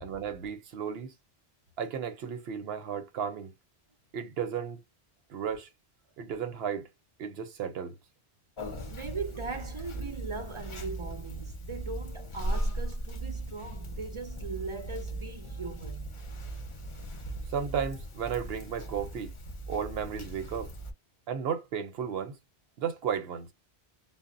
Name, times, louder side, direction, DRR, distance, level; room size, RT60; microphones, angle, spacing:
voice 1, 0.0-1.1 1.8-3.5 4.1-4.8 5.3-5.7 6.2-6.9 7.2-8.0 17.5-19.3 19.7-20.7 21.3-22.4 22.8-23.5, right 7 dB, 70° right, 0.8 m, -34 dB
Conversation, 8.6-20.9, right 1 dB, 35° left, 0.5 m, -38 dB
voice 2, 8.9-16.1, right 4 dB, 50° right, 0.3 m, -39 dB
2.0 x 2.0 x 3.7 m
omnidirectional pair, 1.1 m